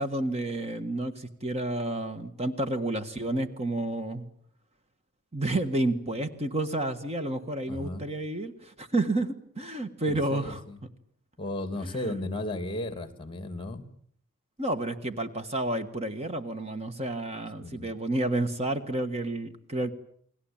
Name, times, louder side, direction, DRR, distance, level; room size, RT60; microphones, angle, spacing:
voice 1, 0.0-4.3 5.3-10.6 11.8-12.3 14.6-19.9, right 1 dB, 30° right, 9 dB, 1.6 m, -30 dB
voice 2, 7.7-8.1 10.1-10.8 11.4-13.8 17.6-17.9, left 2 dB, 25° left, 11 dB, 2.7 m, -35 dB
29.5 x 20.5 x 8.9 m, 0.65 s
head